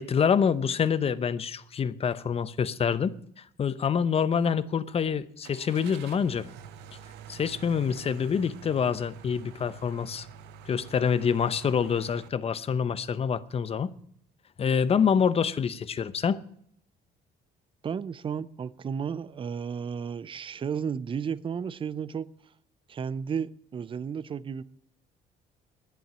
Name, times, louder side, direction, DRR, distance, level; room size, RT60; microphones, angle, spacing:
voice 1, 0.0-3.1 3.6-6.5 7.3-10.3 10.6-13.9 14.6-16.4, left 7 dB, 35° left, 0.8 m, -26 dB
Car / Engine starting, 5.4-12.3, right 8 dB, 85° right, 1.0 m, -47 dB
voice 2, 17.8-22.3 22.9-24.6, right 7 dB, 30° right, 0.6 m, -33 dB
10.0 x 9.2 x 9.5 m
cardioid pair, 110°, 17 cm